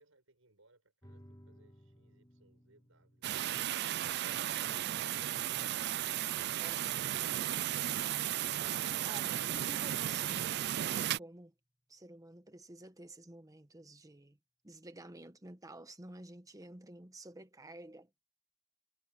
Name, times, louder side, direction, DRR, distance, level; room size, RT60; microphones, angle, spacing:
voice 1, 0.0-4.2, right 2 dB, 80° right, 7.1 m, -67 dB
sound 1, 1.0-12.0, equal, 20° left, 4.9 m, -64 dB
sound 2, 3.2-11.2, right 12 dB, 55° right, 0.4 m, -35 dB
voice 2, 4.7-5.2 6.6-6.8 9.1-11.5 11.9-14.4 14.6-18.1, right 1 dB, 15° right, 1.2 m, -51 dB
head